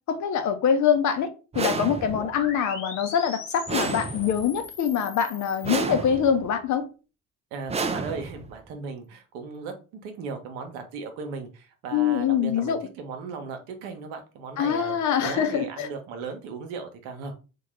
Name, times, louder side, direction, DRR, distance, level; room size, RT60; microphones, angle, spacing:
voice 1, 0.1-1.3 1.5-6.9 11.9-12.8 14.6-15.9, left 8 dB, 50° left, 0.6 m, -24 dB
sound 1, 1.5-2.4 3.7-4.6 5.6-6.5 7.7-8.6, right 4 dB, 15° right, 0.4 m, -31 dB
sound 2, 2.1-5.7, left 4 dB, 80° left, 0.9 m, -39 dB
voice 2, 7.5-9.7 10.0-17.3, right 5 dB, 70° right, 0.8 m, -36 dB
3.6 x 2.3 x 3.1 m
hypercardioid pair, 50°, 38 cm